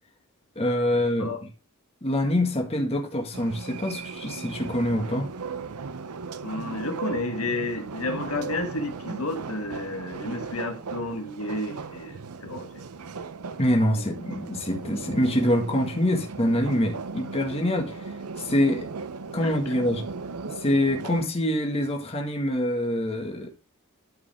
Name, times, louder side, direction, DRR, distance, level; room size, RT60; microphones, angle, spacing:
voice 1, 0.6-1.5 2.0-5.3 13.6-18.1 18.4-18.9 19.3-20.0 20.5-23.5, left 1 dB, 30° left, 1.8 m, -25 dB
sound 1, 3.3-21.2, right 4 dB, 85° right, 0.7 m, -37 dB
voice 2, 6.4-12.8 14.0-14.1 19.4-19.5, left 2 dB, 75° left, 1.5 m, -31 dB
12.5 x 5.3 x 3.6 m
head